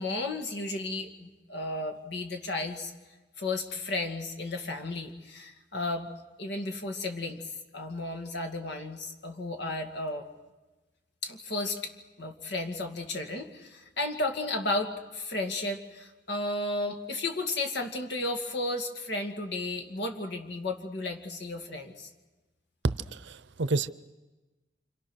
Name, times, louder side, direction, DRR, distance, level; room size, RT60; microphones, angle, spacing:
voice 1, 0.0-2.9 3.4-6.1 6.4-7.4 7.7-10.3 11.2-11.9 12.2-22.1, left 2 dB, 65° left, 5 dB, 2.3 m, -33 dB
voice 2, 23.3-23.9, right 3 dB, 65° right, 16 dB, 0.7 m, -28 dB
28.0 x 26.5 x 6.4 m, 1.2 s
head